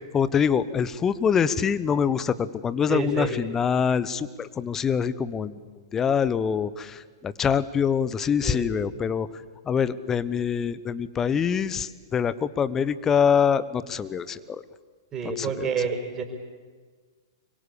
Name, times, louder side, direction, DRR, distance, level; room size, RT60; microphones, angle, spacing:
voice 1, 0.1-5.6 5.9-9.3 9.6-14.6 15.2-15.9, left 7 dB, 20° left, 16 dB, 1.1 m, -25 dB
voice 2, 2.9-3.3 8.4-8.6 15.1-16.2, right 5 dB, 20° right, 3 dB, 5.5 m, -28 dB
25.5 x 23.0 x 8.6 m, 1.5 s
figure-of-eight pair, 110°, 2 cm